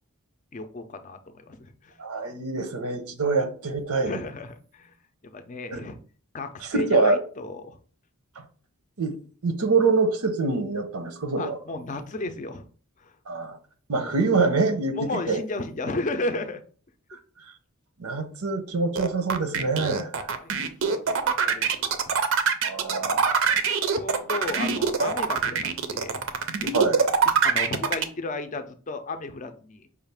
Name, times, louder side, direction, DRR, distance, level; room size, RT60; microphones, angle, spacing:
voice 1, 0.5-2.0 4.0-4.9 5.2-6.0 6.3-7.8 11.4-12.6 13.0-13.1 13.9-14.1 14.9-16.6 20.0-20.1 20.3-20.5 20.8-22.2 22.9-23.3 23.9-26.2 26.6-26.9 27.3-29.9, left 2 dB, 35° left, 8 dB, 0.5 m, -34 dB
voice 2, 2.0-4.2 5.7-5.8 6.6-7.2 9.0-9.1 9.4-11.6 13.3-13.6 13.9-15.4 17.1-17.2 18.0-20.3 22.6-23.2 26.7-27.0, right 3 dB, 90° right, 7 dB, 0.8 m, -25 dB
sound 1, 19.0-28.0, right 6 dB, 60° right, 0.5 m, -23 dB
5.4 x 2.4 x 3.4 m, 0.42 s
head